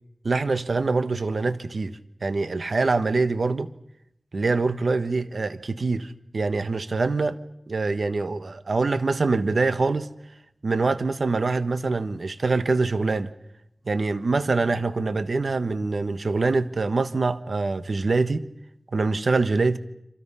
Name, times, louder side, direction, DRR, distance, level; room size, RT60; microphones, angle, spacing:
voice 1, 0.2-3.7 4.3-7.4 7.7-10.1 10.6-13.3 13.9-18.4 18.9-19.8, right 3 dB, 85° right, 1.2 m, -24 dB
29.5 x 27.0 x 5.6 m
wide cardioid pair, 50°, 0 cm